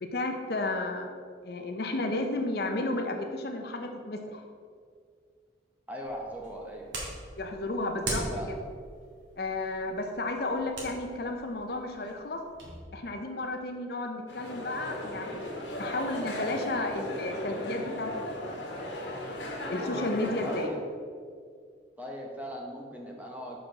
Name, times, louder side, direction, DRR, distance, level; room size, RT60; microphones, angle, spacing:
voice 1, 0.0-1.1 1.4-4.4 7.4-8.6 9.4-12.4 12.9-18.5 19.7-20.7, left 2 dB, 55° left, 4 dB, 0.6 m, -33 dB
voice 2, 5.9-6.9 8.3-8.5 20.4-20.8 22.0-23.6, equal, 10° right, -1 dB, 0.9 m, -39 dB
sound 1, 6.0-12.8, right 1 dB, 85° right, 2.1 m, -41 dB
sound 2, 14.3-20.7, left 1 dB, 75° left, 1.5 m, -36 dB
6.1 x 5.0 x 6.3 m, 2.1 s
head